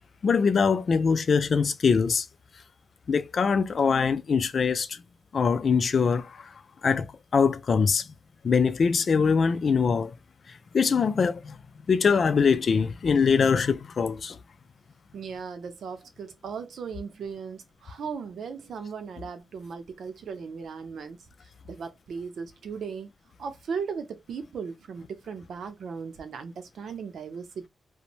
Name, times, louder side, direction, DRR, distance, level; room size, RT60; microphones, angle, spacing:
voice 1, 0.2-2.3 3.1-5.0 5.3-6.5 6.8-8.1 8.4-10.1 10.7-11.6 11.9-14.4, left 5 dB, 55° left, 0.4 m, -23 dB
voice 2, 15.1-21.3 21.6-23.1 23.4-27.7, right 6 dB, 80° right, 0.6 m, -37 dB
2.5 x 2.1 x 3.0 m
wide cardioid pair, 110°, 0 cm